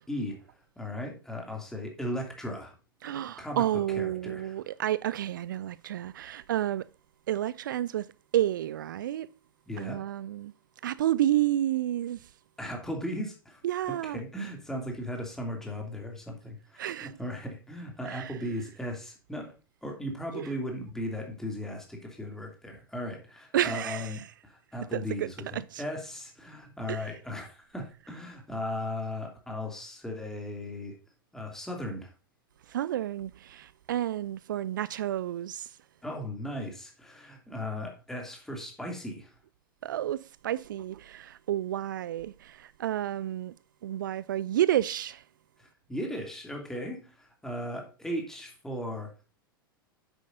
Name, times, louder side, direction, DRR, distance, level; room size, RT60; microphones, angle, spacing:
voice 1, 0.1-0.4 0.8-2.7 3.4-3.6 3.9-4.5 9.7-10.0 12.6-13.6 13.9-19.5 19.8-31.0 31.3-32.1 36.0-39.3 45.6-49.3, left 1 dB, 5° left, 2.6 m, -37 dB
voice 2, 3.0-6.9 7.3-9.3 9.8-10.5 10.8-12.3 13.6-14.2 16.8-17.2 18.0-18.4 20.3-20.5 23.5-24.3 24.9-25.8 26.9-27.2 32.7-35.8 39.8-43.6 43.8-45.2, right 12 dB, 60° right, 0.4 m, -30 dB
9.7 x 8.0 x 2.6 m
figure-of-eight pair, 90°, 12 cm